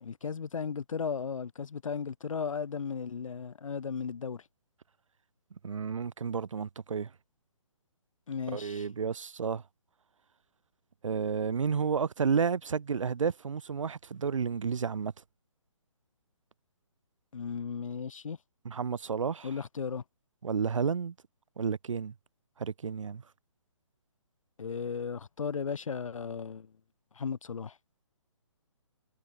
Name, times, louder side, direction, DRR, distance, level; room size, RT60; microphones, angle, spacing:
voice 1, 0.0-4.4 8.3-8.9 17.3-18.4 19.4-20.0 24.6-26.7 27.2-27.7, left 6 dB, 80° left, 0.9 m, -35 dB
voice 2, 5.6-7.1 8.5-9.6 11.0-15.1 18.6-19.5 20.4-21.1 21.6-22.1 22.6-23.2, right 6 dB, 75° right, 1.1 m, -31 dB
hypercardioid pair, 170°, 17 cm